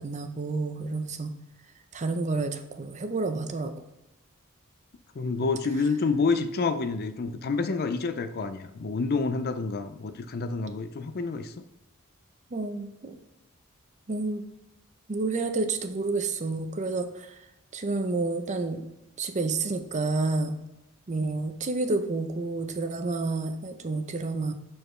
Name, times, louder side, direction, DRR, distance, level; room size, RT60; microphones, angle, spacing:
voice 1, 0.0-1.3 1.9-3.7 12.5-13.1 14.1-14.4 15.1-17.4 17.7-18.9 19.2-20.6 21.1-24.5, right 3 dB, 35° right, 7 dB, 0.5 m, -29 dB
voice 2, 5.1-11.6, left 4 dB, 45° left, 10 dB, 0.4 m, -28 dB
6.7 x 4.4 x 3.1 m, 0.91 s
head